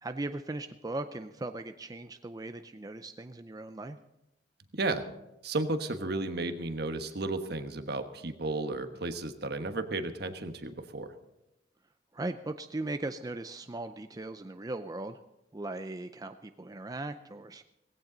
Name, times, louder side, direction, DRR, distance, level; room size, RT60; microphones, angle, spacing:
voice 1, 0.0-4.0 12.1-15.2 15.5-17.6, right 2 dB, 20° right, 8 dB, 0.5 m, -38 dB
voice 2, 4.7-5.0 5.4-11.1, right 2 dB, 60° right, 8 dB, 1.3 m, -33 dB
17.5 x 16.5 x 3.9 m, 0.92 s
head